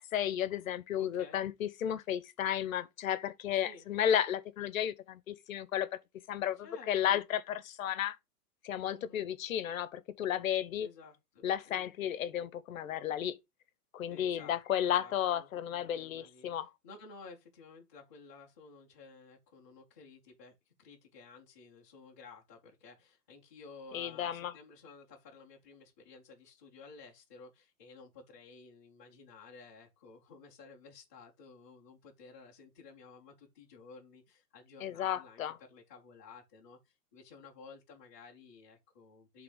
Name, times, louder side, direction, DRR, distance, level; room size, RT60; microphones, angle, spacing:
voice 1, 0.0-5.9 6.3-8.2 8.6-10.9 11.4-13.4 13.9-16.7 23.9-24.5 34.8-35.6, left 10 dB, 60° left, 0.8 m, -33 dB
voice 2, 1.0-1.4 3.6-3.9 6.6-7.2 8.9-9.2 10.8-11.9 14.1-16.5 16.8-20.5 20.8-35.4 35.7-39.4, left 4 dB, 10° left, 0.4 m, -54 dB
5.9 x 3.4 x 4.8 m
hypercardioid pair, 165°, 47 cm